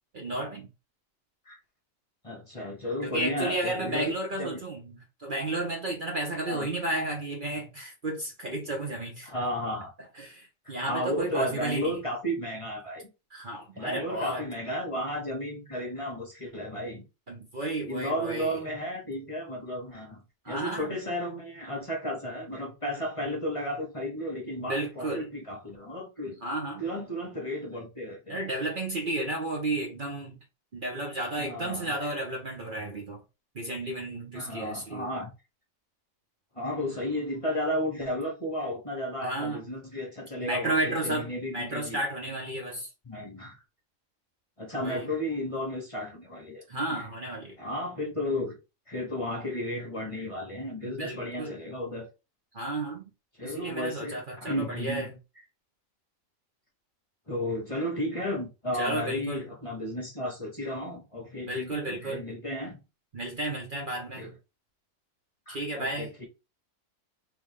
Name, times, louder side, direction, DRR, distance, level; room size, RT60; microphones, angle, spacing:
voice 1, 0.1-0.7 3.0-9.3 10.2-11.9 13.3-14.4 17.3-18.6 20.4-21.0 24.7-25.3 26.4-26.8 28.3-30.4 30.7-33.2 33.5-35.1 39.2-39.6 40.4-42.9 44.8-45.1 46.7-47.5 50.8-51.6 52.5-53.0 53.4-55.1 58.8-59.4 61.4-62.2 63.1-64.3 65.5-66.1, right 2 dB, 45° right, 0.9 m, -32 dB
voice 2, 2.2-4.1 4.4-4.6 6.5-6.7 9.2-9.9 10.7-13.1 13.7-17.0 17.9-20.2 20.5-26.4 26.8-28.7 31.4-32.1 34.3-35.3 36.5-42.0 43.0-43.6 44.6-47.0 47.6-48.6 48.9-52.1 53.4-55.1 57.3-62.8 64.2-64.3 65.5-66.3, equal, 25° left, 1.1 m, -33 dB
3.5 x 3.2 x 3.4 m
omnidirectional pair, 1.4 m